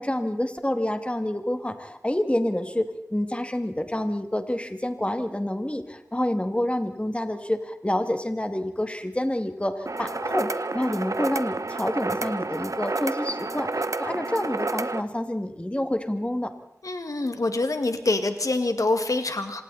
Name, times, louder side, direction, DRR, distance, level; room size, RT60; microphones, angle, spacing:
voice 1, 0.0-16.5, left 1 dB, 20° left, 7 dB, 2.3 m, -28 dB
sound 1, 9.9-15.0, right 3 dB, 75° right, 1.0 m, -30 dB
voice 2, 16.8-19.6, left 2 dB, 85° left, 7 dB, 2.1 m, -25 dB
27.0 x 27.0 x 4.2 m, 0.81 s
wide cardioid pair, 50°, 6 cm